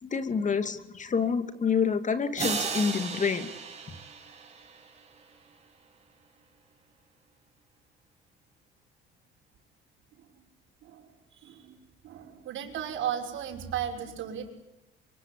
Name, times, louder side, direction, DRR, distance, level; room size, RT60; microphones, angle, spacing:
voice 1, 0.0-3.5, left 6 dB, 35° left, 9 dB, 2.7 m, -28 dB
sound 1, 2.4-5.2, right 5 dB, 30° right, 7.8 m, -35 dB
voice 2, 10.8-11.8 12.0-14.5, right 9 dB, 70° right, 4 dB, 6.1 m, -35 dB
25.0 x 23.5 x 8.5 m, 0.92 s
supercardioid pair, 90°, 21 cm